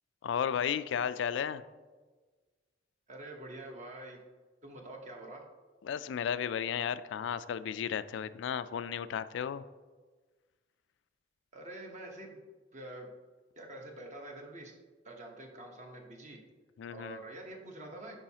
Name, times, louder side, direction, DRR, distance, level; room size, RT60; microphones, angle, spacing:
voice 1, 0.2-1.6 5.8-9.6 16.8-17.2, left 8 dB, 70° left, 15 dB, 0.3 m, -34 dB
voice 2, 3.1-4.2 4.6-5.4 11.5-12.4 12.7-13.1 13.6-14.7 15.0-16.4 16.9-18.2, right 1 dB, 40° right, 1 dB, 1.0 m, -46 dB
8.8 x 5.5 x 2.8 m, 1.4 s
head